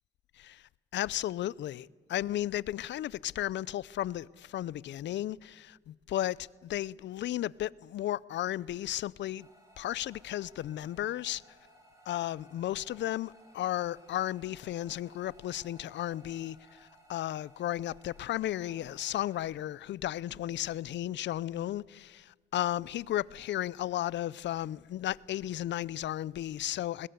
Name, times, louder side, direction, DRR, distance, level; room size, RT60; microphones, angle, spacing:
voice 1, 0.9-9.5 9.8-11.4 12.1-27.1, left 13 dB, 65° left, 0.6 m, -34 dB
sound 1, 9.4-19.4, right 1 dB, 15° right, 6.8 m, -60 dB
21.0 x 20.5 x 7.9 m
cardioid pair, 90°, 20 cm